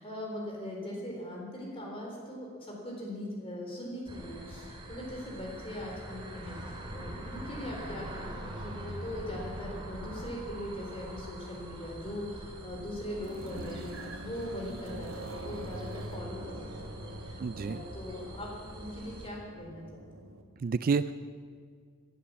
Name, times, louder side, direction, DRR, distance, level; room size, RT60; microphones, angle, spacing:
voice 1, 0.0-20.3, left 1 dB, 25° left, -1 dB, 3.8 m, -41 dB
sound 1, 4.1-19.3, right 1 dB, 20° right, 2.4 m, -44 dB
sound 2, 11.9-20.4, right 1 dB, 65° right, 1.8 m, -45 dB
voice 2, 17.4-17.8 20.6-21.1, right 5 dB, 40° right, 13 dB, 0.3 m, -29 dB
18.0 x 11.5 x 7.0 m, 2.1 s
head